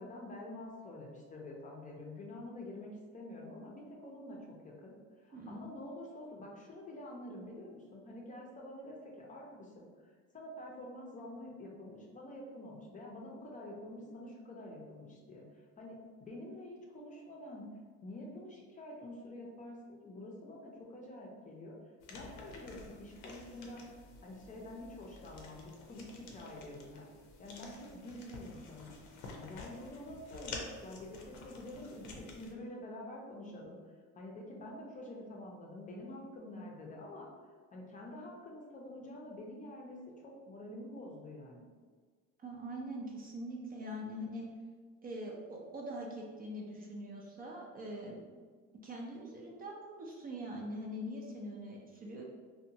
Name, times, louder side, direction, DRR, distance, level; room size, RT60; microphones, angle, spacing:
voice 1, 0.0-4.9 5.2-17.7 18.0-21.8 22.1-23.9 24.2-27.1 27.4-28.9 29.4-33.8 34.1-37.3 37.7-40.0 40.2-41.7, left 1 dB, 25° left, -1 dB, 0.5 m, -47 dB
voice 2, 5.3-5.7 42.4-44.5 45.0-48.2 48.8-52.2, equal, 30° right, -1 dB, 0.4 m, -43 dB
sound 1, 22.0-32.5, left 3 dB, 85° left, 0.6 m, -50 dB
2.8 x 2.2 x 2.7 m, 1.5 s
cardioid pair, 110°, 30 cm